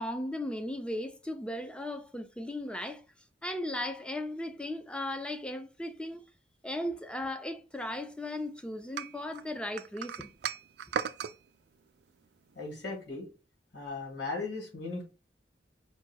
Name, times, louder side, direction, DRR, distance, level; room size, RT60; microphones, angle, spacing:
voice 1, 0.0-3.0 3.4-6.3 6.6-10.3, left 1 dB, 5° left, 0.4 m, -36 dB
sound 1, 9.0-11.4, right 8 dB, 65° right, 0.3 m, -36 dB
voice 2, 12.6-13.3 13.7-15.0, left 3 dB, 70° left, 2.3 m, -37 dB
4.6 x 2.2 x 4.4 m
head